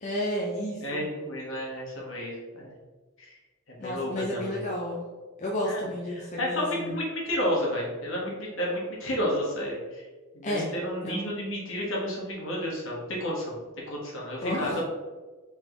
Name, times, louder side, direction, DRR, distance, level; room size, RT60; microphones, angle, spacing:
voice 1, 0.0-1.0 3.8-5.0 5.4-6.9 10.4-10.7 11.0-11.2 14.4-14.8, equal, 35° left, -3 dB, 0.6 m, -31 dB
voice 2, 0.8-2.7 3.2-3.4 3.7-4.6 5.6-5.8 6.1-10.0 10.3-13.5 13.9-14.8, equal, 70° left, -3 dB, 1.4 m, -31 dB
3.8 x 3.4 x 3.7 m, 1.3 s
head